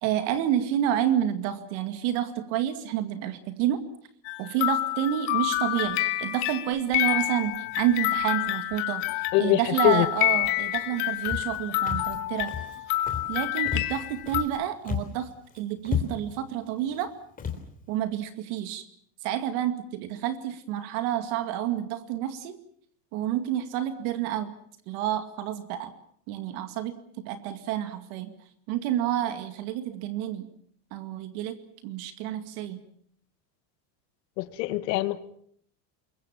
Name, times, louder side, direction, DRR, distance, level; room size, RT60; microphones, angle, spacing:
voice 1, 0.0-3.8 4.4-12.6 13.3-15.3 15.5-17.1 17.9-18.8 19.2-22.6 23.1-24.5 24.9-25.9 26.3-27.0 27.2-28.3 28.7-30.5 30.9-31.6 31.8-32.9, right 11 dB, 60° right, 9 dB, 2.4 m, -29 dB
sound 1, 4.2-14.4, left 16 dB, 55° left, 2.4 m, -28 dB
voice 2, 9.3-10.1 34.4-35.2, left 18 dB, 90° left, 12 dB, 2.1 m, -24 dB
Walk footsteps, 11.3-11.6 11.9-12.2 12.5-12.8 13.1-13.4 13.7-14.6 14.8-15.2 15.5-15.6 15.8-16.4 16.9-17.1 17.4-17.6, left 7 dB, 15° left, 3.3 m, -32 dB
27.0 x 22.5 x 7.2 m, 0.64 s
cardioid pair, 160°, 49 cm